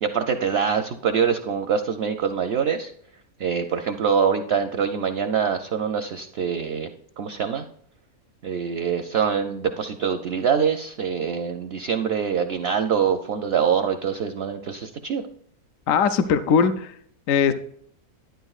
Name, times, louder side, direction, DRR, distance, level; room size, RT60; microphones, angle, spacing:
voice 1, 0.0-2.9 3.4-6.9 7.2-7.6 8.4-15.2, right 7 dB, 65° right, 7 dB, 0.6 m, -24 dB
voice 2, 15.9-16.9 17.3-17.5, left 6 dB, 70° left, 10 dB, 0.9 m, -20 dB
11.5 x 9.2 x 2.4 m, 0.66 s
omnidirectional pair, 1.6 m